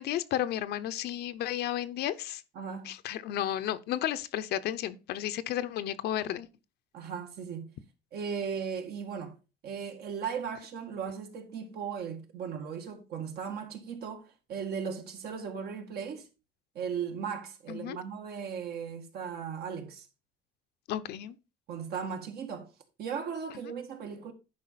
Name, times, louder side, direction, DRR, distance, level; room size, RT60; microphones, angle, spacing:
voice 1, 0.0-2.4 2.9-6.5 17.7-18.0 20.9-21.4, left 12 dB, 75° left, 0.7 m, -33 dB
voice 2, 2.5-2.9 6.9-7.7 8.1-9.3 9.6-16.3 16.7-20.0 21.7-22.7 23.0-24.3, right 6 dB, 70° right, 1.8 m, -37 dB
10.5 x 5.0 x 4.1 m
cardioid pair, 110°, 17 cm